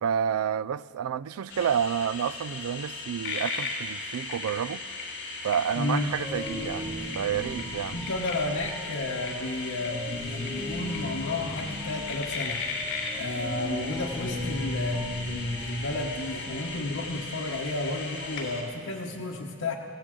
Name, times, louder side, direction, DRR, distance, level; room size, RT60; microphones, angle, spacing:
voice 1, 0.0-4.8 5.4-8.0, right 8 dB, 85° right, 0.4 m, -29 dB
sound 1, 1.5-18.6, left 3 dB, 60° left, 3.6 m, -37 dB
voice 2, 5.7-6.1 7.9-19.8, left 2 dB, 90° left, 1.2 m, -32 dB
sound 2, 5.7-18.5, left 1 dB, 5° right, 2.7 m, -38 dB
23.0 x 16.5 x 3.8 m
head